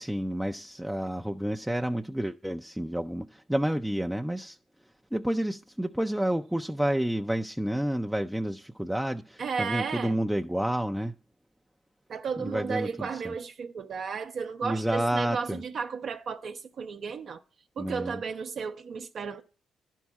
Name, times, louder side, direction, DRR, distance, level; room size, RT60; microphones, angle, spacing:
voice 1, 0.0-4.6 5.1-11.1 12.4-13.3 14.6-15.6 17.8-18.2, right 1 dB, 5° right, 0.4 m, -30 dB
voice 2, 9.4-10.1 12.1-17.4 17.8-19.4, right 5 dB, 55° right, 0.5 m, -33 dB
11.0 x 4.6 x 7.3 m
cardioid pair, 90°, 0 cm